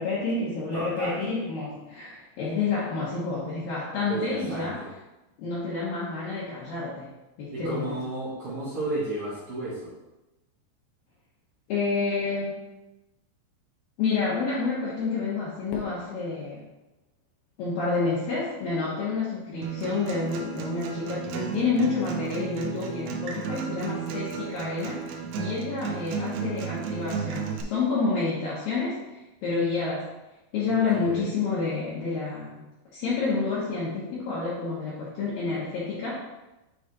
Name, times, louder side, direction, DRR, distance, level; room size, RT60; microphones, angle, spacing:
voice 1, 0.0-4.9 5.4-7.1 7.4-8.0 11.7-12.6 14.0-16.6 17.6-25.0 25.4-30.1 30.5-32.6 32.9-36.2, left 4 dB, 65° left, -8 dB, 2.5 m, -29 dB
voice 2, 0.7-1.2 4.1-4.7 7.5-9.9 30.7-31.3, right 2 dB, 70° right, -10 dB, 1.3 m, -33 dB
Fireworks, 15.7-18.0, left 4 dB, 90° left, 1.8 m, -43 dB
Acoustic guitar, 19.6-27.6, right 6 dB, 90° right, 3.2 m, -33 dB
9.3 x 3.2 x 4.1 m, 1.0 s
omnidirectional pair, 5.3 m